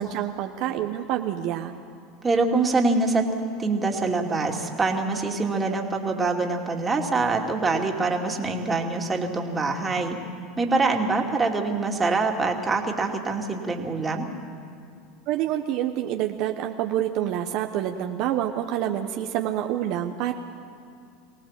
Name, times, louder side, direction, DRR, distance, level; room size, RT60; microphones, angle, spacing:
voice 1, 0.0-1.7 15.3-20.3, right 11 dB, 60° right, 5 dB, 1.0 m, -27 dB
voice 2, 2.2-3.2 3.6-10.2 10.6-14.3, right 3 dB, 20° right, 2 dB, 2.5 m, -24 dB
23.5 x 17.5 x 7.4 m, 2.5 s
supercardioid pair, 105°, 0 cm